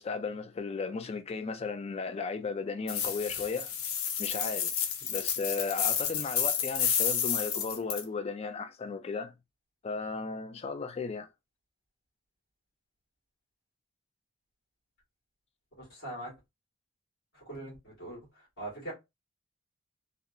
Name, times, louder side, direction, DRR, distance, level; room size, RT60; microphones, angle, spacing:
voice 1, 0.0-3.7 4.2-9.3 9.8-11.3, left 4 dB, 30° left, 0.3 m, -35 dB
sound 1, 2.9-8.0, left 8 dB, 80° left, 0.5 m, -31 dB
voice 2, 15.8-16.3 17.3-18.9, right 1 dB, 55° left, 1.5 m, -42 dB
2.8 x 2.1 x 2.3 m
head